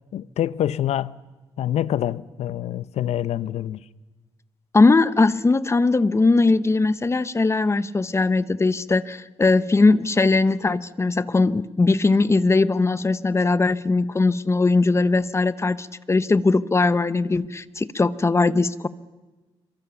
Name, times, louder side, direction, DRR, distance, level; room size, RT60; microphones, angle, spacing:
voice 1, 0.1-1.2 1.6-3.8, left 11 dB, 85° left, 0.8 m, -26 dB
voice 2, 4.7-18.9, left 3 dB, 25° left, 1.0 m, -20 dB
27.0 x 23.5 x 7.0 m
cardioid pair, 95°, 11 cm